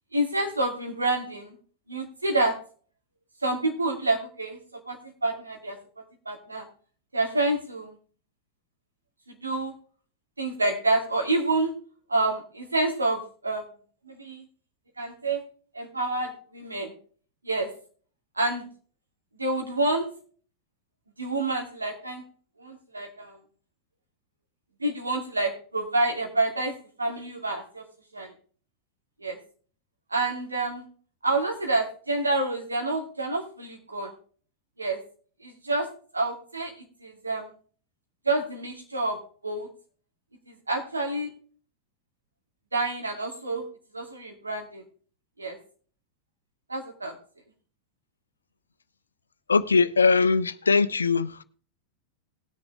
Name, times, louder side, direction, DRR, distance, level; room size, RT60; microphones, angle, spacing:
voice 1, 0.1-1.6 1.9-2.6 3.4-5.8 6.3-6.7 7.1-8.0 9.3-9.7 10.4-11.7 12.1-13.6 14.0-14.4 15.0-15.4 15.7-16.9 17.4-17.7 18.4-18.7 19.4-20.0 21.2-22.2 22.6-23.4 24.8-26.7 27.0-27.8 28.1-28.3 29.2-29.4 30.1-30.8 31.2-34.1 34.8-35.0 35.4-35.9 36.1-37.5 38.2-39.2 39.4-39.7 40.5-41.3 42.7-43.6 43.9-44.8 45.4-45.6 46.7-47.1, right 2 dB, 80° right, 2 dB, 2.7 m, -28 dB
voice 2, 49.5-51.4, left 4 dB, 75° left, 15 dB, 0.6 m, -21 dB
19.0 x 6.9 x 3.3 m, 0.43 s
figure-of-eight pair, 90°, 0 cm